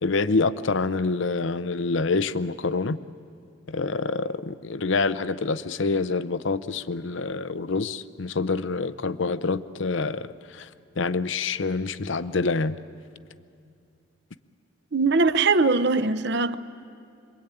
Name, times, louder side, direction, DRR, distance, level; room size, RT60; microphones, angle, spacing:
voice 1, 0.0-3.0 3.7-10.7 11.0-12.8, left 3 dB, 65° left, 0.7 m, -26 dB
voice 2, 14.9-16.6, right 3 dB, 55° right, 0.8 m, -21 dB
26.0 x 23.0 x 9.1 m
head